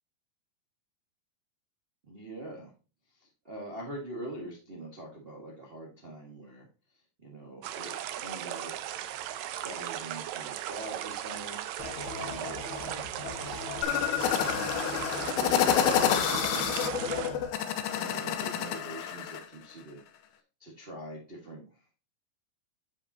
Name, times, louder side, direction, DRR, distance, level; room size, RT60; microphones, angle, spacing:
voice 1, 2.1-2.7 3.2-6.7 7.2-8.8 9.6-11.6 12.2-12.6 14.4-17.4 17.9-20.0 20.6-21.8, right 1 dB, 55° right, -2 dB, 0.6 m, -43 dB
sound 1, 7.6-17.3, right 12 dB, 85° right, 1.6 m, -37 dB
sound 2, 11.8-17.4, left 4 dB, 60° left, 1.2 m, -40 dB
sound 3, 13.8-19.4, left 9 dB, 75° left, 1.9 m, -28 dB
9.3 x 5.2 x 2.8 m, 0.33 s
omnidirectional pair, 4.0 m